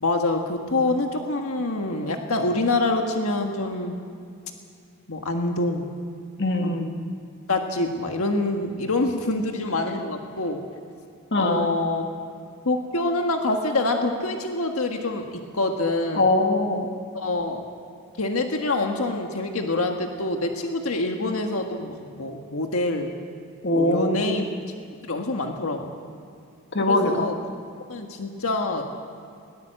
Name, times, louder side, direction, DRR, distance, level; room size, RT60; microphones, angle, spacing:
voice 1, 0.0-3.9 5.1-5.9 6.6-6.7 7.5-10.6 11.3-12.0 12.6-16.2 17.1-17.6 18.2-23.2 23.7-24.4 25.1-25.9 26.8-27.4 27.9-28.8, left 2 dB, 80° left, 3 dB, 1.7 m, -26 dB
voice 2, 6.4-7.0 11.3-11.6 16.1-17.0 23.6-24.4 26.7-27.3, left 2 dB, 55° left, 4 dB, 1.9 m, -22 dB
21.0 x 18.5 x 7.8 m, 2.4 s
head